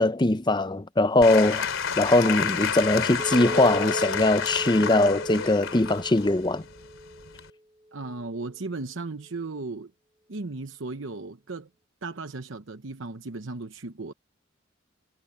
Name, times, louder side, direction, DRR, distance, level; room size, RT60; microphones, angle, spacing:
voice 1, 0.0-6.6, left 2 dB, 20° left, 0.8 m, -21 dB
Applause / Crowd, 1.2-7.5, left 6 dB, 85° left, 3.1 m, -30 dB
Chink clink, 3.2-7.5 8.0-8.4, right 1 dB, 15° right, 2.3 m, -37 dB
voice 2, 7.9-9.9 10.3-11.7 12.0-14.1, right 3 dB, 70° right, 0.9 m, -36 dB
head